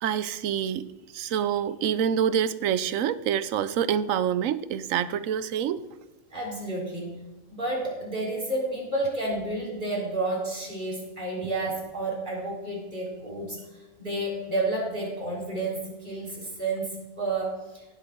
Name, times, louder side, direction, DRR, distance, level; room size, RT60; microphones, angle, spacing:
voice 1, 0.0-5.9, right 9 dB, 80° right, 16 dB, 1.0 m, -27 dB
voice 2, 6.3-7.2 7.5-17.9, right 2 dB, 35° right, -4 dB, 3.9 m, -31 dB
18.0 x 8.2 x 3.6 m, 1.2 s
omnidirectional pair, 1.4 m